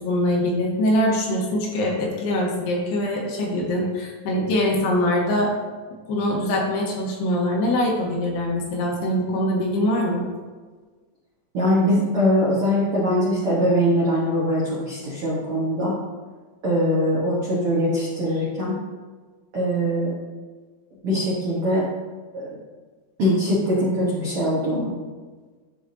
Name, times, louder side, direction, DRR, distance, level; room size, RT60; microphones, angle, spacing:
voice 1, 0.0-5.5 6.1-10.3, left 1 dB, 75° left, -1 dB, 3.1 m, -23 dB
voice 2, 11.5-15.9 16.6-18.8 19.5-20.1 21.0-21.8 22.3-22.6 23.2-24.9, equal, 85° right, -7 dB, 1.2 m, -22 dB
12.0 x 4.7 x 2.7 m, 1.4 s
omnidirectional pair, 4.9 m